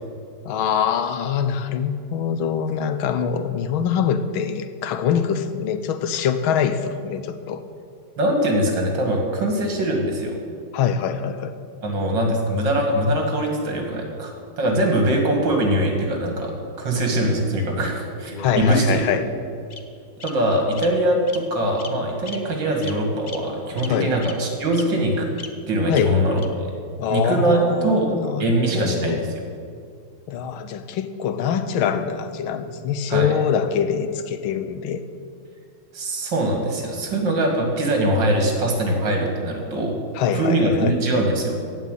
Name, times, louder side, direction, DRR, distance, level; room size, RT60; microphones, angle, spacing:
voice 1, 0.4-7.6 10.7-11.5 18.4-19.3 23.9-24.1 25.9-26.1 27.0-29.2 30.3-35.0 40.1-40.9, left 8 dB, 85° left, 10 dB, 1.6 m, -24 dB
voice 2, 8.2-10.4 11.8-19.1 20.2-25.3 25.7-26.7 27.1-28.1 28.4-29.4 33.1-33.4 35.9-40.0 40.3-41.6, right 1 dB, 65° right, 2 dB, 2.7 m, -22 dB
Bird vocalization bird call bird song, 18.3-19.0 19.7-19.8 20.2-20.3 20.8-20.9 21.3-21.4 21.8-21.9 22.2-22.4 22.8-22.9 23.3-23.4 23.8-23.9 24.2-24.3 24.7-24.8 25.4-25.5 25.9-26.0 26.4-26.5, left 4 dB, 65° left, 0.4 m, -36 dB
15.5 x 5.6 x 9.1 m, 2.3 s
omnidirectional pair, 2.2 m